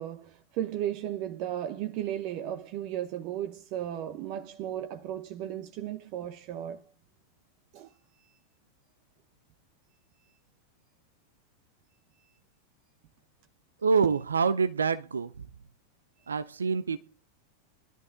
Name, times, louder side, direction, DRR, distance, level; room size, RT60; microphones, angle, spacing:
voice 1, 0.0-6.8 7.7-7.9, right 11 dB, 45° right, 0.9 m, -35 dB
voice 2, 13.8-15.5 16.3-17.0, right 5 dB, 70° right, 0.5 m, -26 dB
22.5 x 13.0 x 2.5 m
figure-of-eight pair, 90°, 0 cm